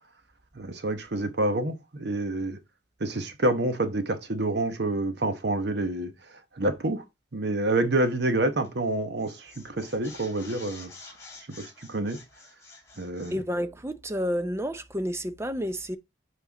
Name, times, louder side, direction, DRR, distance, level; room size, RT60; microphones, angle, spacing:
voice 1, 0.6-2.6 3.0-6.1 6.6-7.0 7.3-10.9 11.6-12.2 13.0-13.4, right 2 dB, 60° right, 0.9 m, -28 dB
sound 1, 8.6-8.9 9.2-13.4, left 3 dB, 15° left, 2.9 m, -49 dB
voice 2, 13.3-16.0, equal, 15° right, 0.5 m, -30 dB
7.2 x 4.4 x 3.9 m
head